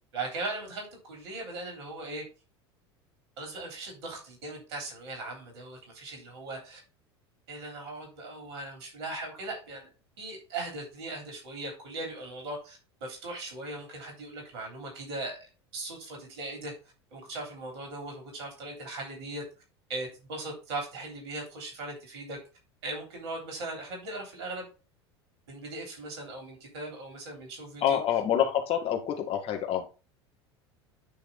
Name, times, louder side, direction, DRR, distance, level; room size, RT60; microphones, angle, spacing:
voice 1, 0.1-2.2 3.4-6.8 7.5-9.9 10.2-16.7 17.1-19.4 19.9-22.4 22.8-24.7 25.5-28.0, right 2 dB, 70° right, 1 dB, 3.6 m, -39 dB
voice 2, 27.8-29.8, left 9 dB, 40° left, 3 dB, 1.6 m, -27 dB
8.7 x 3.3 x 5.2 m, 0.32 s
hypercardioid pair, 80°, 14 cm